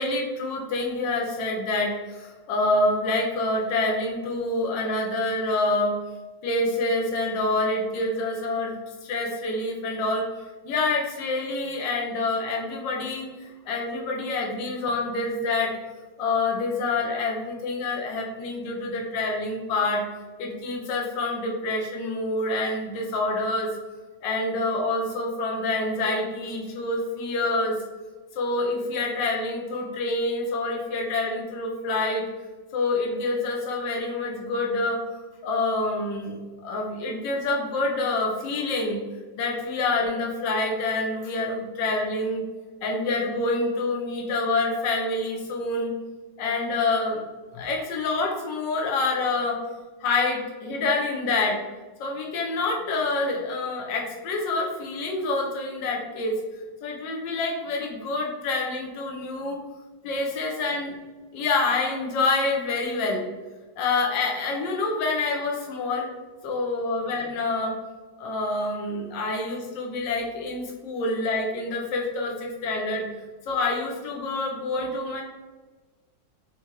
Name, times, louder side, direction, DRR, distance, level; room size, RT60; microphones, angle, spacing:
voice 1, 0.0-5.9 6.4-8.7 9.0-15.7 16.2-20.0 20.4-23.7 24.2-27.8 28.3-32.2 32.7-39.0 39.4-42.4 42.8-45.9 46.4-47.2 47.5-49.6 50.0-51.6 52.0-56.4 56.8-59.6 60.0-60.9 61.3-63.2 63.8-66.1 66.4-67.7 68.2-73.1 73.5-75.2, left 2 dB, 80° left, 0 dB, 1.5 m, -27 dB
4.2 x 3.0 x 3.7 m, 1.3 s
omnidirectional pair, 1.9 m